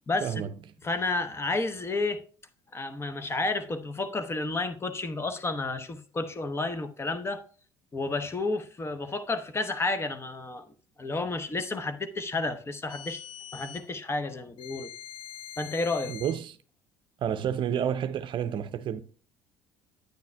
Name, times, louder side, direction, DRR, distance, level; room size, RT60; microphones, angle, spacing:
voice 1, 0.8-2.2 2.7-7.4 7.9-10.6 11.0-13.2 13.5-14.9 15.6-16.1, left 3 dB, 25° left, 0.9 m, -31 dB
sound 1, 12.9-13.9 14.6-16.4, left 11 dB, 55° left, 0.6 m, -44 dB
voice 2, 16.1-16.6 17.2-19.0, right 9 dB, 50° right, 0.5 m, -30 dB
9.4 x 9.3 x 2.2 m
hypercardioid pair, 70°, 10 cm